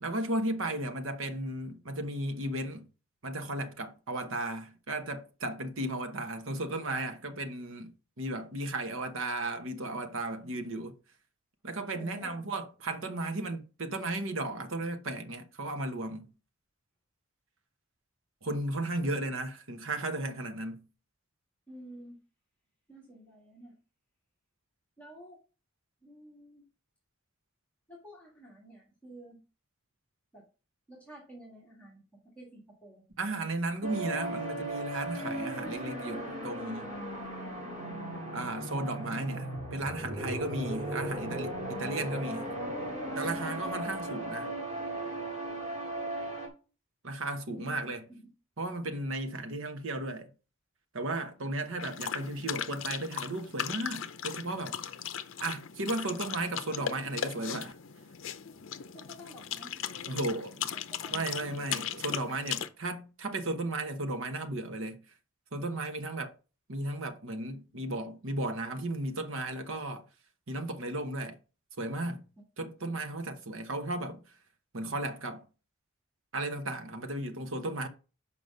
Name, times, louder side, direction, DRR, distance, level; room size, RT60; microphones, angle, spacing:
voice 1, 0.0-2.9 3.2-7.9 8.2-11.0 11.6-16.3 18.4-20.8 33.2-36.9 38.3-42.5 43.2-44.5 47.0-48.0 48.6-50.3 50.9-54.8 55.4-57.8 60.1-60.6 61.1-65.0 65.5-66.4 66.7-70.0 70.5-71.4 71.8-72.3 72.6-74.2 74.7-75.5 76.3-77.9, right 2 dB, 70° right, 1.1 m, -35 dB
voice 2, 11.9-12.4 19.0-19.2 21.7-22.2 22.9-23.8 25.0-25.4 26.0-26.6 27.9-29.4 30.3-30.4 30.9-32.0 32.4-33.0 43.2-43.6 47.5-48.3 58.9-61.2, right 1 dB, 5° left, 1.8 m, -50 dB
sound 1, 33.8-46.5, right 1 dB, 35° right, 2.2 m, -37 dB
sound 2, 51.8-62.7, left 9 dB, 65° left, 0.6 m, -38 dB
6.5 x 5.1 x 5.3 m
head